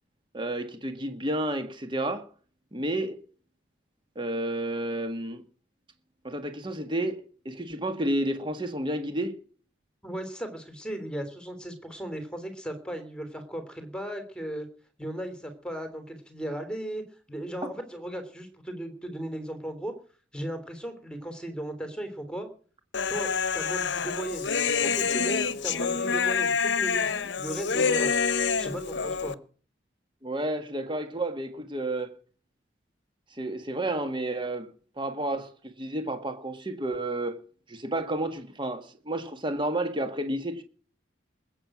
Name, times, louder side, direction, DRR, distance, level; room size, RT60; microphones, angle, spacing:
voice 1, 0.3-2.3 2.7-3.2 4.2-5.4 6.2-9.4 30.2-32.2 33.3-34.7 35.0-37.4 37.7-40.6, right 1 dB, 25° right, 1.8 m, -31 dB
voice 2, 10.0-14.7 15.0-17.0 17.3-19.9 20.3-22.5 23.1-24.5 24.8-28.2 28.6-29.4, right 1 dB, 5° left, 3.3 m, -36 dB
Human voice, 22.9-29.3, left 5 dB, 70° left, 0.9 m, -27 dB
20.5 x 9.1 x 6.2 m
head